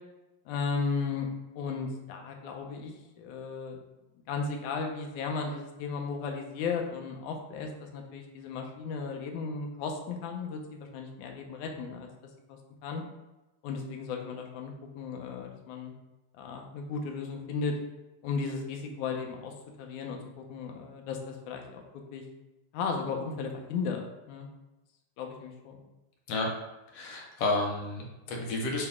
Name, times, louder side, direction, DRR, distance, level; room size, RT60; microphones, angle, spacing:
voice 1, 0.5-1.3 1.5-3.8 4.3-12.1 12.5-13.0 13.6-15.9 16.4-17.7 18.2-21.8 22.1-22.2 22.7-24.0 24.3-24.5 25.2-25.8, left 5 dB, 85° left, 2 dB, 2.2 m, -35 dB
voice 2, 26.9-28.9, left 2 dB, 70° left, 0 dB, 1.6 m, -31 dB
7.9 x 3.3 x 3.6 m, 1.0 s
omnidirectional pair, 3.4 m